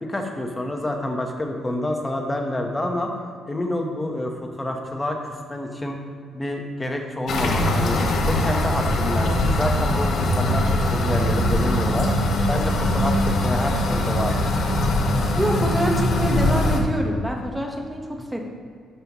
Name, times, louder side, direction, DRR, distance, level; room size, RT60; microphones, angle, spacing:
voice 1, 0.0-3.1 3.5-5.2 5.5-6.0 6.3-8.0 8.3-12.1 12.5-14.5, left 1 dB, 15° left, 3 dB, 1.1 m, -28 dB
sound 1, 7.3-16.8, left 1 dB, 60° left, 1.1 m, -21 dB
voice 2, 15.4-18.4, right 1 dB, 5° right, 1 dB, 1.3 m, -26 dB
12.5 x 5.6 x 3.1 m, 2.2 s
cardioid pair, 90°, 0 cm